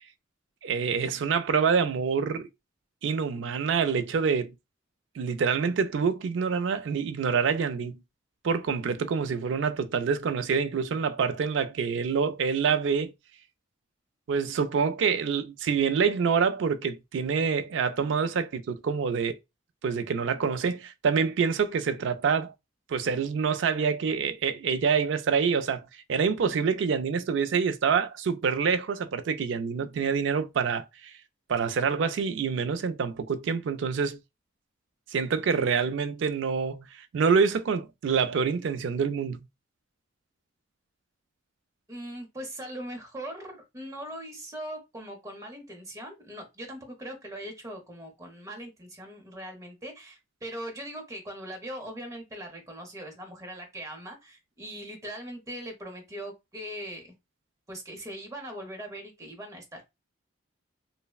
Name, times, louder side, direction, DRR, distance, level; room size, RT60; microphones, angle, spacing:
voice 1, 0.6-2.5 3.0-4.5 5.2-8.0 8.4-13.1 14.3-19.4 19.8-22.5 22.9-31.1 31.5-34.2 35.1-39.4, right 6 dB, 65° right, 0.3 m, -26 dB
voice 2, 41.9-57.1 57.7-59.9, right 1 dB, 15° right, 0.7 m, -40 dB
3.2 x 2.0 x 2.2 m
head